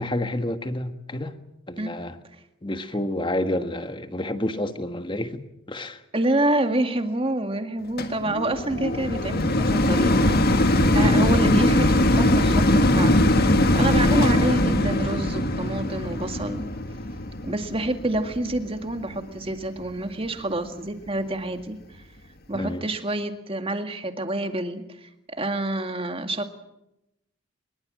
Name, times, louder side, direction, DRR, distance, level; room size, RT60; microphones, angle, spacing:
voice 1, 0.0-1.3 1.7-2.2 2.6-5.4 5.7-6.0 22.5-22.9, left 1 dB, 25° left, 1.5 m, -29 dB
voice 2, 6.1-16.6 17.4-22.0 22.5-26.5, right 1 dB, 25° right, 2.1 m, -28 dB
sound 1, 8.0-19.2 19.8-19.9, left 1 dB, 45° left, 1.8 m, -21 dB
24.0 x 22.0 x 7.7 m
head